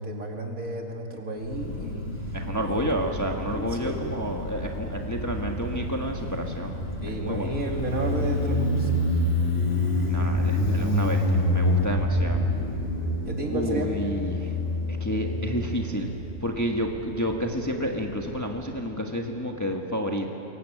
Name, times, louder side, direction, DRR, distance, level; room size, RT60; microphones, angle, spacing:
voice 1, 0.0-2.4 2.7-2.8 3.2-4.1 7.0-8.9 13.2-13.9, right 2 dB, 80° right, 1 dB, 2.9 m, -32 dB
Motorcycle, 1.4-18.6, left 1 dB, 60° left, 4.3 m, -28 dB
voice 2, 2.3-6.8 7.0-7.6 10.1-12.4 13.5-14.5 15.0-16.1 16.4-20.3, equal, 15° left, 1 dB, 1.3 m, -30 dB
23.0 x 17.5 x 8.8 m, 2.9 s
omnidirectional pair, 1.4 m